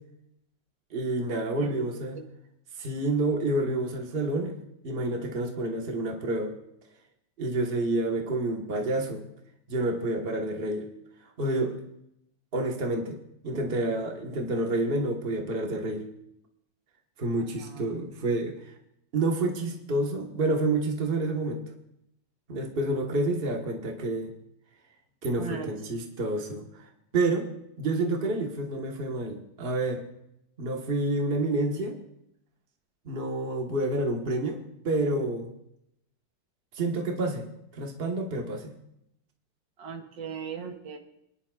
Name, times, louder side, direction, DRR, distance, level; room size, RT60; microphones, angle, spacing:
voice 1, 0.9-2.2 2.8-4.5 4.8-6.5 7.4-9.2 9.7-10.9 11.4-11.8 12.5-16.0 17.2-18.5 19.1-21.6 22.5-24.3 25.2-26.9 27.1-27.5 27.8-30.0 30.6-32.0 33.0-35.5 36.7-37.4 37.7-38.8, right 2 dB, 30° right, 2 dB, 1.4 m, -29 dB
voice 2, 1.6-2.2 17.4-18.0 25.4-25.7 39.8-41.0, right 6 dB, 75° right, 4 dB, 1.8 m, -39 dB
26.5 x 10.5 x 2.4 m, 0.79 s
omnidirectional pair, 2.0 m